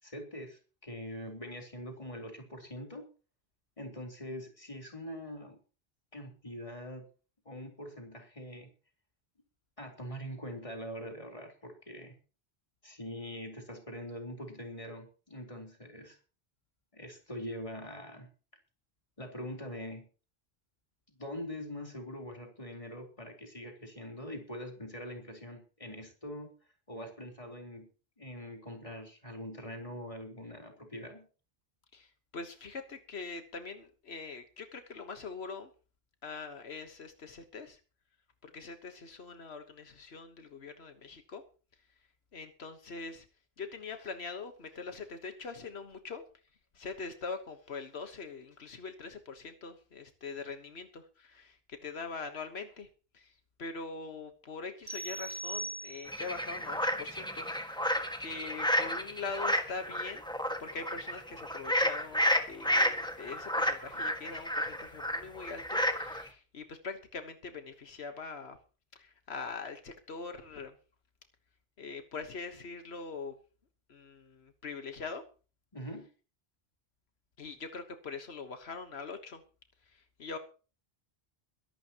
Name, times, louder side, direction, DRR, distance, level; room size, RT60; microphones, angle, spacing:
voice 1, 0.0-3.0 3.8-5.6 6.1-7.1 7.5-8.7 9.8-12.1 12.8-16.2 16.9-18.3 19.2-20.1 21.1-26.5 26.9-27.9 28.2-31.3 75.7-76.1, equal, 30° left, 2 dB, 3.9 m, -43 dB
voice 2, 31.9-35.7 36.2-37.8 38.4-41.4 42.3-43.3 43.6-46.2 46.7-52.9 53.1-57.5 57.8-60.2 60.6-68.6 68.9-70.7 71.8-73.3 73.9-75.2 77.4-79.4 79.8-80.4, left 4 dB, 85° left, 7 dB, 1.5 m, -43 dB
sound 1, 54.9-56.4, right 2 dB, 70° right, 3.8 m, -40 dB
sound 2, 56.1-66.3, equal, 5° left, 1.7 m, -31 dB
22.5 x 12.0 x 3.0 m, 0.36 s
omnidirectional pair, 1.0 m